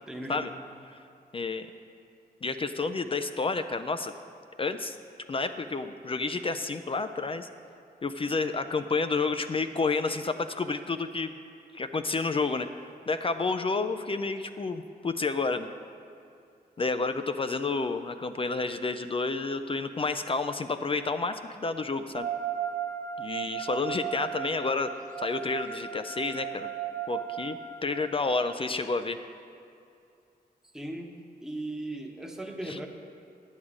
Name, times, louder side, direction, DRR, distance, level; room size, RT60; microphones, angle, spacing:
voice 1, 0.1-0.4 30.7-31.1 31.4-32.9, right 1 dB, 5° right, 1 dB, 1.0 m, -37 dB
voice 2, 1.3-1.7 2.4-4.1 4.6-5.0 5.3-7.5 8.0-11.3 11.7-15.7 16.8-22.3 23.2-24.9 25.2-26.7 27.1-29.2 32.6-32.8, left 3 dB, 35° left, 9 dB, 0.4 m, -30 dB
sound 1, 22.1-28.5, right 9 dB, 50° right, 0.9 m, -36 dB
9.5 x 7.2 x 5.0 m, 2.5 s
cardioid pair, 60°, 17 cm